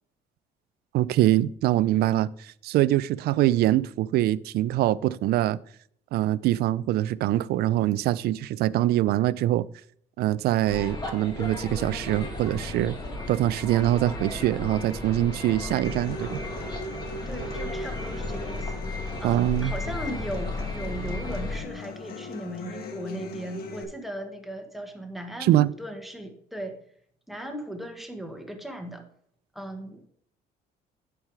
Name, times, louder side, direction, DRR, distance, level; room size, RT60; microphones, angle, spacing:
voice 1, 0.9-5.6 6.1-9.7 10.2-13.0 13.3-16.4 19.2-19.7 25.4-25.7, right 14 dB, 70° right, 0.4 m, -24 dB
sound 1, 10.7-21.6, left 2 dB, 25° left, 2.2 m, -34 dB
Human voice / Acoustic guitar, 15.8-23.8, left 2 dB, 65° left, 1.3 m, -40 dB
voice 2, 17.2-18.8 19.2-26.8 27.3-29.0 29.5-30.1, right 1 dB, ahead, 1.4 m, -37 dB
10.5 x 4.8 x 4.8 m
cardioid pair, 110°, 17 cm